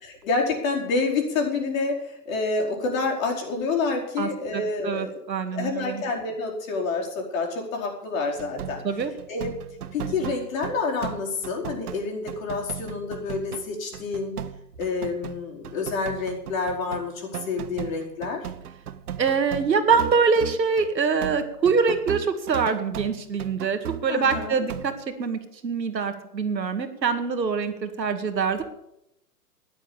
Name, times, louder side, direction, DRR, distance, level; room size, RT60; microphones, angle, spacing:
voice 1, 0.0-5.2 5.5-8.8 9.3-9.6 9.9-14.4 14.8-18.5 24.1-24.6, left 4 dB, 50° left, 0 dB, 4.8 m, -28 dB
voice 2, 4.2-6.0 8.8-9.1 19.2-24.9 25.2-28.6, right 5 dB, 85° right, 8 dB, 2.2 m, -24 dB
sound 1, 8.4-20.9 21.2-25.0, right 10 dB, 65° right, 1.1 m, -37 dB
13.0 x 10.5 x 7.1 m, 0.82 s
hypercardioid pair, 130°, 50 cm